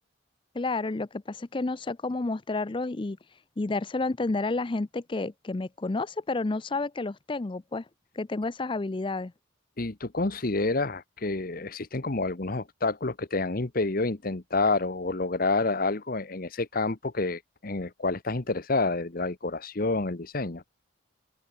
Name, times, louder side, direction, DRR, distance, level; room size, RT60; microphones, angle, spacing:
voice 1, 0.5-3.2 3.6-7.8 8.2-9.3, left 3 dB, 25° left, 0.5 m, -30 dB
voice 2, 9.8-20.6, left 3 dB, 45° left, 1.1 m, -28 dB
open air
head